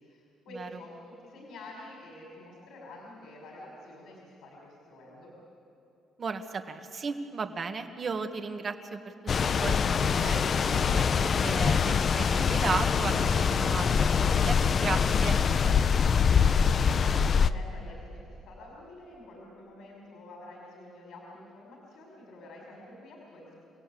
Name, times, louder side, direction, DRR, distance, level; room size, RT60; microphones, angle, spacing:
voice 1, 0.0-5.3 16.1-23.6, left 1 dB, 70° left, -2 dB, 5.4 m, -48 dB
voice 2, 6.2-9.1 9.4-11.1 11.4-15.4, right 4 dB, 40° right, 6 dB, 1.7 m, -35 dB
sound 1, 9.3-17.5, left 6 dB, 45° left, 0.6 m, -24 dB
28.5 x 17.5 x 8.6 m, 2.8 s
cardioid pair, 115°, 0 cm